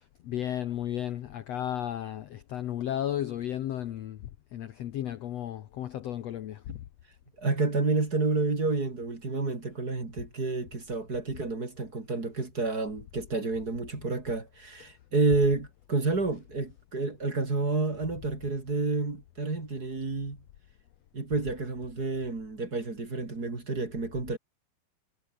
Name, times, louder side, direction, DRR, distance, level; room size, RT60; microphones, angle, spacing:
voice 1, 0.0-6.8 14.8-14.9, left 11 dB, 85° left, 1.4 m, -34 dB
voice 2, 7.4-20.4 21.1-24.4, right 3 dB, 25° right, 3.8 m, -29 dB
omnidirectional pair, 4.5 m